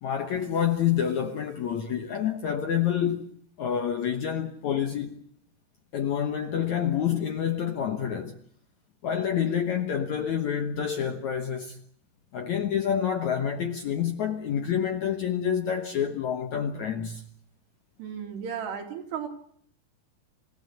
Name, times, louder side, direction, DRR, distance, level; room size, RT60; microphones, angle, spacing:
voice 1, 0.0-3.3 3.6-5.2 5.9-8.4 9.0-11.8 12.3-17.2, left 8 dB, 65° left, 1.9 m, -28 dB
voice 2, 18.0-19.3, right 7 dB, 75° right, 4.8 m, -34 dB
27.0 x 16.0 x 8.0 m
omnidirectional pair, 4.8 m